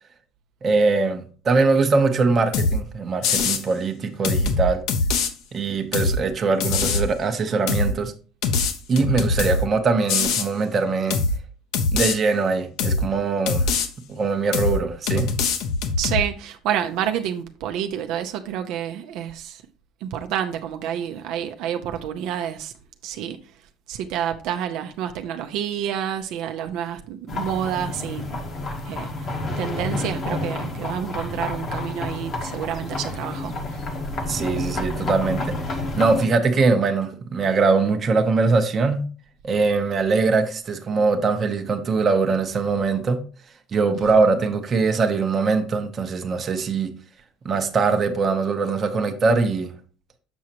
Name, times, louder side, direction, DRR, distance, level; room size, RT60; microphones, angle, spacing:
voice 1, 0.6-4.8 5.5-8.1 8.9-11.2 11.9-13.7 14.1-15.3 34.3-39.1 39.4-43.2 43.7-46.9 47.4-49.7, right 4 dB, 25° right, 0.8 m, -22 dB
sound 1, 2.5-2.8 3.2-3.6 4.2-5.3 5.9-6.2 6.6-7.1 7.7-7.9 8.4-9.7 10.1-10.5 11.1-11.4 11.7-12.2 12.8-13.1 13.5-13.9 14.5-14.8 15.1-16.2, left 4 dB, 65° left, 1.0 m, -22 dB
voice 2, 16.0-19.6 20.0-22.7 23.0-23.4 23.9-28.4 28.9-29.1 29.6-33.5 43.9-44.2, right 9 dB, 60° right, 0.6 m, -28 dB
sound 2, 27.3-36.3, left 2 dB, 35° left, 1.1 m, -29 dB
7.1 x 6.3 x 2.9 m
cardioid pair, 165°, 0 cm